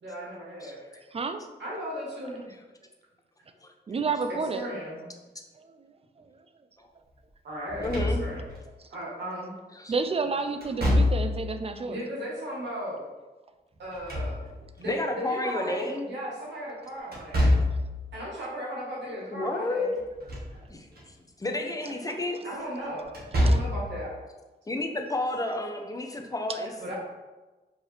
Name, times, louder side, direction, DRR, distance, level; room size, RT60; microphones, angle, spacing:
voice 1, 0.0-1.0 1.6-2.5 4.3-5.0 7.4-8.4 8.9-9.5 11.9-13.0 13.8-14.4 14.8-17.5 18.1-19.9 22.4-24.1 26.8-26.9, equal, 80° right, -6 dB, 1.5 m, -36 dB
voice 2, 1.1-1.4 3.9-4.6 5.6-5.8 6.2-6.3 8.8-8.9 9.9-12.0 21.9-22.0 23.4-23.6 26.5-26.6, right 4 dB, 35° right, 8 dB, 0.4 m, -30 dB
Slam / Thump thud, 7.7-8.6 10.6-11.5 13.7-14.8 17.1-17.9 20.0-20.6 21.0-21.1 23.1-23.9, left 1 dB, 60° right, 1.3 m, -25 dB
voice 3, 7.8-8.2 9.7-9.9 14.9-16.1 19.3-20.0 20.7-22.4 24.7-26.9, left 2 dB, 20° left, 4 dB, 0.6 m, -31 dB
4.6 x 2.8 x 3.2 m, 1.2 s
cardioid pair, 70°, 18 cm